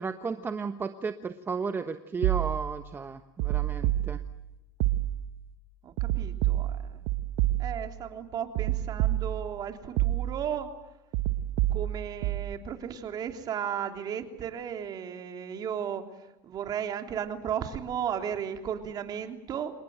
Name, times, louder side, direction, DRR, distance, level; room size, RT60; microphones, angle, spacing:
voice 1, 0.0-4.2, right 5 dB, 20° right, 8 dB, 1.2 m, -34 dB
sound 1, 2.2-2.9 3.4-4.5 4.8-5.4 6.0-8.0 8.6-9.6 10.0-10.6 11.1-12.5, right 14 dB, 70° right, 1.5 m, -28 dB
voice 2, 5.8-7.0 7.6-10.7 11.7-19.7, right 8 dB, 40° right, 5 dB, 3.4 m, -35 dB
27.0 x 20.0 x 9.2 m, 0.94 s
supercardioid pair, 105°, 10 cm